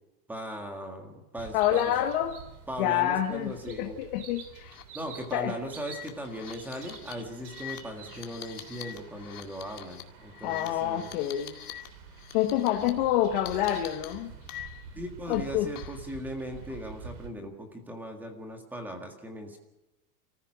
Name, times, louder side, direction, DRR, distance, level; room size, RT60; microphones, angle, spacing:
voice 1, 0.3-1.9 2.7-4.0 4.9-11.1 14.9-19.6, equal, 5° right, 4 dB, 1.8 m, -38 dB
sound 1, 1.4-17.3, right 6 dB, 70° right, 3.4 m, -48 dB
voice 2, 1.5-2.4 2.8-4.7 5.3-5.5 10.4-11.5 12.3-14.3 15.3-15.7, left 12 dB, 35° left, 2 dB, 1.4 m, -27 dB
sound 2, 4.6-4.8 5.1-5.3 5.8-11.9 12.1-12.9 13.5-15.0 15.3-16.1, left 12 dB, 75° left, 2.1 m, -44 dB
29.0 x 14.5 x 6.2 m, 0.97 s
supercardioid pair, 170°, 46 cm